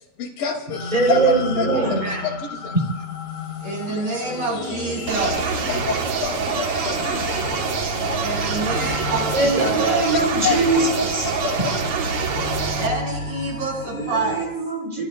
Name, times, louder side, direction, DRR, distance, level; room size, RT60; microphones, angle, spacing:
voice 1, 0.2-0.8 1.1-1.7 2.0-2.4 2.6-2.7 5.7-7.4 10.1-10.6 11.4-11.8, left 7 dB, 85° left, 3 dB, 4.1 m, -27 dB
sound 1, 0.7-14.5, left 3 dB, 55° left, 3.5 m, -32 dB
voice 2, 0.9-2.0 9.3-11.3 11.6-11.7 13.9-15.1, right 3 dB, 10° right, 2 dB, 3.2 m, -21 dB
voice 3, 1.8-2.2 3.6-5.6 8.2-10.0 12.8-14.5, right 3 dB, 60° right, 0 dB, 7.0 m, -28 dB
sound 2, 5.1-12.9, right 5 dB, 75° right, 1.0 m, -25 dB
26.0 x 24.0 x 2.3 m, 0.78 s
omnidirectional pair, 3.9 m